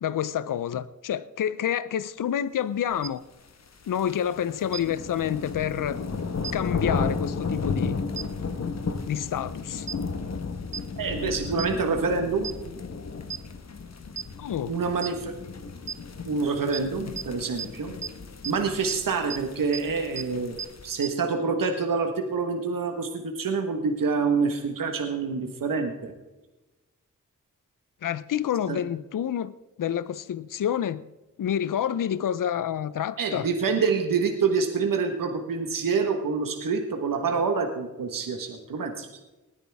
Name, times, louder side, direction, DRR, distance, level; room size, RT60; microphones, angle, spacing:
voice 1, 0.0-3.2 3.9-6.0 6.5-8.0 9.1-9.9 14.4-14.7 28.0-31.0 31.4-33.5, left 9 dB, 70° left, 0.6 m, -28 dB
sound 1, 3.0-3.1 4.7-4.8 6.4-6.5 8.2-8.3 9.9-10.0 10.7-10.8 11.6-11.7 12.4-12.5 13.3-13.4 14.2-14.3 15.0-15.1 15.9-16.0 16.7-16.8 17.2-17.3 17.6-17.7 18.0-18.1 18.4-18.5 18.9-19.0 19.3-19.4 19.7-19.8 20.2-20.3 20.6-20.7 21.0-21.1, right 6 dB, 55° right, 0.7 m, -32 dB
sound 2, 3.5-21.0, left 4 dB, 50° left, 1.3 m, -34 dB
voice 2, 11.0-12.5 14.7-15.3 16.2-17.9 18.4-26.1 28.7-28.8 33.2-39.1, right 5 dB, 80° right, 1.4 m, -27 dB
19.5 x 9.8 x 3.5 m
cardioid pair, 45°, 33 cm